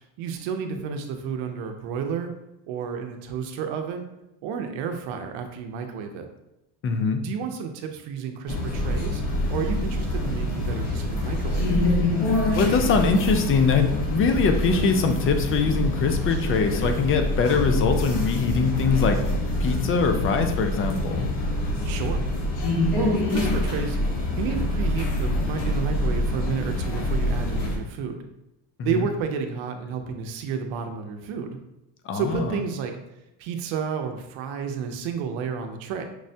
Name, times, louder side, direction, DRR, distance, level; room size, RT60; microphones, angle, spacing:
voice 1, 0.2-2.3 2.7-4.1 4.4-6.3 7.2-9.2 9.5-11.8 21.8-22.2 22.9-28.2 28.8-31.6 32.1-33.0 33.4-36.0, right 6 dB, 75° right, 6 dB, 0.7 m, -31 dB
voice 2, 6.8-7.2 12.6-21.3 28.8-29.1 32.0-32.6, left 5 dB, 30° left, 6 dB, 0.4 m, -23 dB
sound 1, 8.5-27.8, left 1 dB, 60° left, 1.2 m, -25 dB
6.0 x 2.1 x 2.7 m, 0.91 s
cardioid pair, 120°, 47 cm